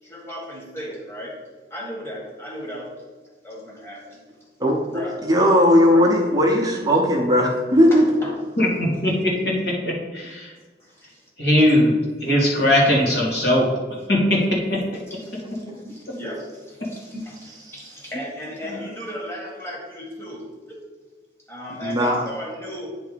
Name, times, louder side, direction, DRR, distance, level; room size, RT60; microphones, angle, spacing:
voice 1, 0.0-1.4 1.7-2.9 3.4-4.2 4.9-5.3 7.9-8.4 10.8-11.3 15.1-20.9 21.5-23.0, equal, 15° left, -5 dB, 1.8 m, -36 dB
voice 2, 4.6-8.0 21.8-22.2, equal, 20° right, -1 dB, 0.9 m, -17 dB
voice 3, 8.6-9.5 9.8-10.5 11.4-13.7 14.1-14.8 18.6-18.8, left 1 dB, 70° left, -4 dB, 2.5 m, -20 dB
9.2 x 3.6 x 5.1 m, 1.4 s
head